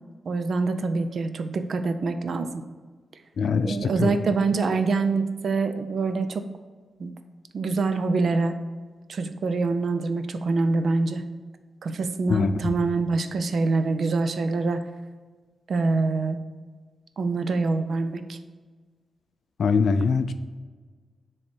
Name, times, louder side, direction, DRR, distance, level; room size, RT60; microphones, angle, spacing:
voice 1, 0.3-2.5 3.6-6.4 7.0-7.1 7.5-8.6 9.1-11.2 11.8-14.8 15.7-16.4 17.2-18.4, right 3 dB, 60° right, 9 dB, 0.5 m, -25 dB
voice 2, 3.4-4.2 12.3-12.8 19.6-20.3, left 5 dB, 65° left, 11 dB, 0.4 m, -23 dB
7.2 x 3.2 x 4.4 m, 1.4 s
wide cardioid pair, 130°, 0 cm